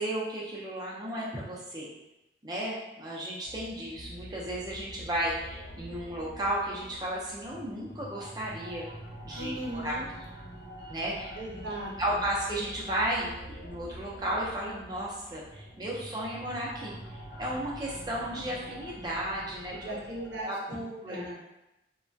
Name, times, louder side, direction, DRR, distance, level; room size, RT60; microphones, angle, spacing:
voice 1, 0.0-1.9 2.4-8.9 9.2-10.0 10.9-11.3 12.0-20.0 20.4-21.4, right 1 dB, 20° right, -5 dB, 0.6 m, -34 dB
sound 1, 3.4-20.4, equal, 70° left, 0.7 m, -46 dB
voice 2, 9.3-10.1 11.3-11.9 15.8-15.9 19.7-21.4, right 1 dB, 85° right, -3 dB, 0.6 m, -38 dB
2.9 x 2.2 x 2.6 m, 0.93 s
head